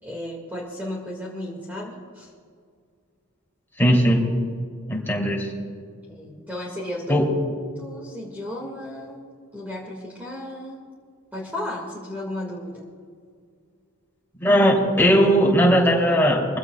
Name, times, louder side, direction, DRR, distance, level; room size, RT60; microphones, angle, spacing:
voice 1, 0.0-2.3 6.1-7.2 7.8-9.3 9.5-10.8 11.3-12.8, left 1 dB, 10° right, -3 dB, 1.9 m, -34 dB
voice 2, 3.8-4.2 4.9-5.5 7.1-7.3 14.4-16.6, equal, 10° left, -3 dB, 2.9 m, -18 dB
24.0 x 16.0 x 2.3 m, 2.1 s
head